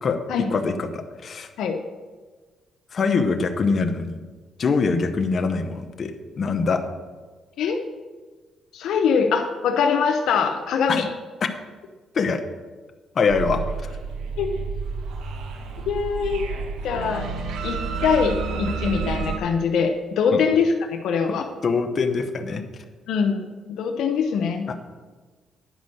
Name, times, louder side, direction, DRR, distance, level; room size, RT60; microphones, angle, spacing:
voice 1, 0.5-1.5 2.9-4.2 4.6-6.8 10.9-11.0 12.1-12.4 13.1-13.9 20.3-20.4 21.3-22.6 24.7-24.8, left 4 dB, 45° left, 6 dB, 0.9 m, -24 dB
voice 2, 8.7-11.1 14.4-14.5 15.9-16.5 16.8-17.3 17.6-21.4 23.1-24.7, left 6 dB, 80° left, 4 dB, 0.7 m, -23 dB
sound 1, 13.3-19.4, right 4 dB, 85° right, 1.1 m, -30 dB
10.0 x 5.3 x 6.5 m, 1.4 s
cardioid pair, 90°, 0 cm